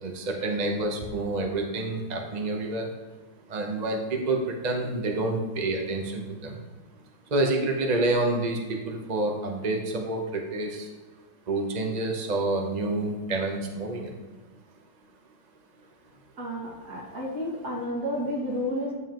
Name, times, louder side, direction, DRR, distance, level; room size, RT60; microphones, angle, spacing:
voice 1, 0.0-2.9 3.5-4.4 4.6-6.6 7.3-10.9 11.5-14.1, right 2 dB, 35° right, 1 dB, 0.7 m, -28 dB
voice 2, 16.4-18.9, equal, 55° right, -3 dB, 2.5 m, -31 dB
11.0 x 7.3 x 3.0 m, 1.3 s
omnidirectional pair, 2.0 m